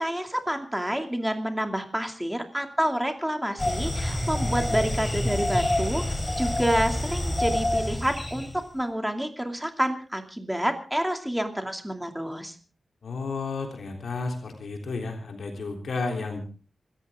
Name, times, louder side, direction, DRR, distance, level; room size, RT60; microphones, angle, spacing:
voice 1, 0.0-6.0 6.4-12.6, equal, 5° right, 5 dB, 2.5 m, -28 dB
sound 1, 3.6-8.6, left 1 dB, 20° left, 4.2 m, -27 dB
voice 2, 13.0-16.4, left 3 dB, 85° left, 2 dB, 3.4 m, -32 dB
26.5 x 14.0 x 3.7 m, 0.38 s
wide cardioid pair, 120°, 0 cm